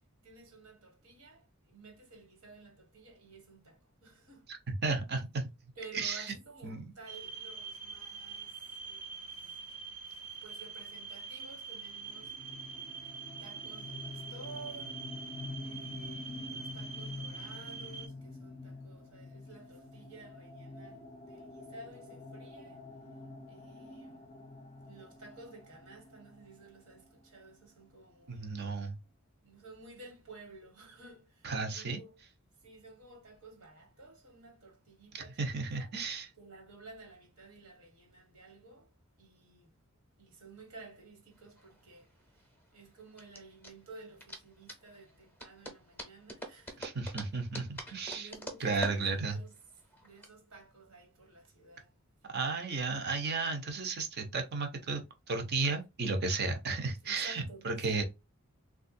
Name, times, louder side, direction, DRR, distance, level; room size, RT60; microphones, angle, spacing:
voice 1, 0.2-4.5 5.7-9.6 10.0-13.0 13.4-15.1 15.6-22.8 23.5-24.3 24.8-28.6 29.4-32.2 32.6-35.9 36.3-38.9 39.2-39.7 40.2-46.9 48.1-49.5 50.0-51.9 57.0-58.0, right 3 dB, 75° right, 1.4 m, -53 dB
voice 2, 4.5-5.5 5.9-6.3 6.6-6.8 28.3-29.0 31.4-32.0 35.1-36.3 46.8-48.3 48.6-49.4 52.3-58.0, right 4 dB, 50° right, 0.7 m, -34 dB
sound 1, 7.1-18.1, right 5 dB, 90° right, 1.1 m, -44 dB
sound 2, 12.0-27.6, left 2 dB, 30° left, 0.4 m, -47 dB
sound 3, 41.4-50.3, equal, 10° left, 0.8 m, -46 dB
3.4 x 2.4 x 2.6 m
head